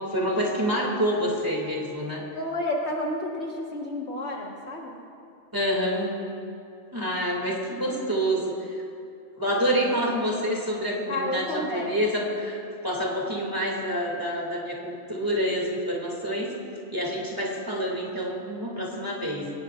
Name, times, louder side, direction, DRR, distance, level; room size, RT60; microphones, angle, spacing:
voice 1, 0.0-2.2 5.5-6.1 6.9-8.8 9.4-12.6 12.8-16.5 16.9-19.5, equal, 15° right, -2 dB, 2.5 m, -27 dB
voice 2, 2.3-5.0 11.1-12.0, left 1 dB, 55° left, -1 dB, 1.7 m, -30 dB
22.5 x 18.0 x 2.5 m, 2.5 s
omnidirectional pair, 1.4 m